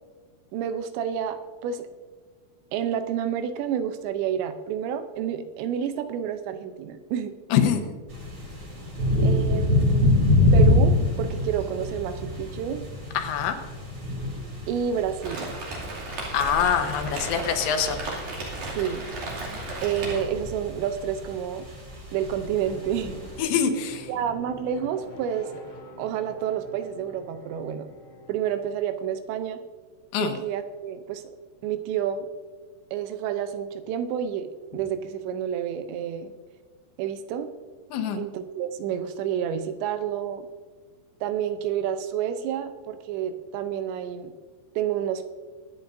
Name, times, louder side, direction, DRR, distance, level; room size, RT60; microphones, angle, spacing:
voice 1, 0.5-1.9 2.7-7.3 9.2-10.2 10.5-12.8 14.7-15.5 18.8-19.0 19.8-21.7 22.1-23.2 24.1-25.6 26.0-27.9 28.3-29.6 30.2-31.2 31.6-32.3 32.9-36.3 37.0-37.5 38.1-40.5 41.2-44.3 44.8-45.3, right 9 dB, 80° right, 9 dB, 2.9 m, -29 dB
voice 2, 7.5-7.8 13.1-13.6 16.3-18.0 23.4-24.1 30.1-30.4 37.9-38.3, left 7 dB, 85° left, 6 dB, 3.4 m, -24 dB
sound 1, 8.1-23.4, left 1 dB, 25° right, 2.7 m, -26 dB
Rain, 15.2-20.2, right 2 dB, 50° right, 3.6 m, -35 dB
sound 2, 22.6-28.6, left 1 dB, 35° left, 2.2 m, -45 dB
23.0 x 9.3 x 2.6 m, 1.5 s
omnidirectional pair, 5.1 m